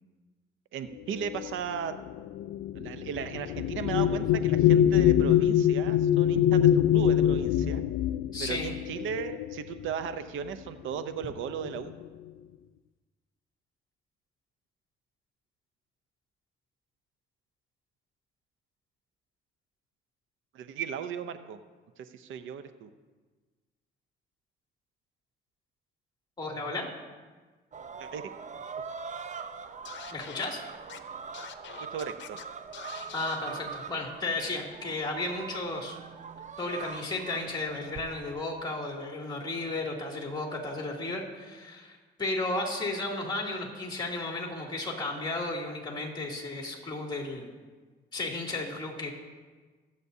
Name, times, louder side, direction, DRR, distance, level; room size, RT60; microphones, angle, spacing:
voice 1, 0.7-1.9 2.7-7.8 8.4-11.9 20.5-21.6 22.0-22.9 28.0-28.3 31.9-32.4, right 7 dB, 80° right, 10 dB, 0.7 m, -36 dB
sound 1, 1.2-10.1 11.0-11.1 11.5-12.1, left 11 dB, 85° left, 0.4 m, -25 dB
voice 2, 8.3-8.7 26.4-26.9 30.1-30.6 33.1-36.0 36.6-47.4 48.1-49.1, left 2 dB, 20° left, -1 dB, 2.8 m, -34 dB
sound 2, 27.7-38.5, right 5 dB, 40° right, 0.7 m, -42 dB
Scratching (performance technique), 29.8-30.4 30.9-31.0 31.3-32.4 32.7-33.4, left 9 dB, 65° left, 0.8 m, -45 dB
21.5 x 8.3 x 2.8 m, 1.4 s
cardioid pair, 90°, 20 cm